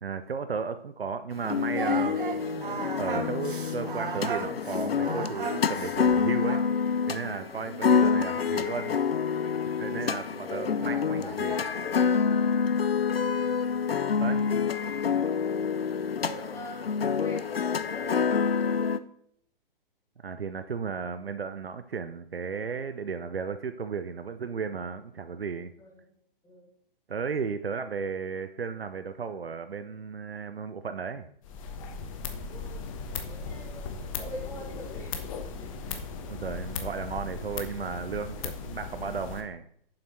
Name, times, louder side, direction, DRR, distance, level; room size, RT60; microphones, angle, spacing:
voice 1, 0.0-6.6 7.1-8.9 9.8-11.6 14.2-14.5 20.2-25.7 27.1-31.3 36.3-39.6, right 5 dB, 80° right, 10 dB, 0.7 m, -34 dB
sound 1, 1.4-19.0, left 6 dB, 80° left, 0.7 m, -27 dB
Singing, 1.7-6.8, right 6 dB, 60° right, 1.2 m, -35 dB
voice 2, 7.3-7.6 10.4-12.3 16.2-19.0 25.8-26.2 26.4-26.7 32.5-32.9 33.2-33.9 34.2-35.1 35.6-36.0, left 1 dB, 10° left, -1 dB, 2.2 m, -43 dB
sound 2, 31.4-39.4, left 5 dB, 35° left, 1.2 m, -37 dB
9.0 x 7.4 x 4.4 m, 0.66 s
figure-of-eight pair, 125°, 29 cm